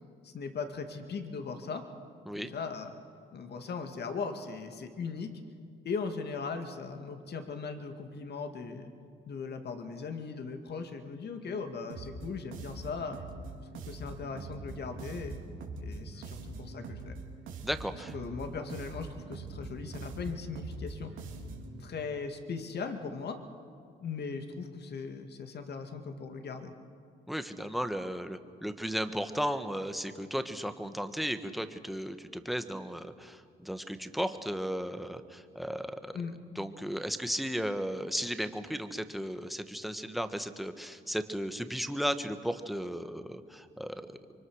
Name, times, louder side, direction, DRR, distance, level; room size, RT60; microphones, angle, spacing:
voice 1, 0.2-1.8 2.3-2.9 3.3-5.3 5.8-8.9 9.3-13.2 13.9-15.4 15.8-17.2 18.1-21.1 21.8-23.4 24.0-26.7 36.1-36.3, left 5 dB, 55° left, 6 dB, 2.3 m, -38 dB
sound 1, 11.9-21.8, right 3 dB, 85° right, 3.3 m, -43 dB
voice 2, 17.6-18.1 27.3-36.2 36.5-44.2, equal, ahead, 8 dB, 1.4 m, -35 dB
26.5 x 24.0 x 6.5 m, 2.4 s
cardioid pair, 90°, 20 cm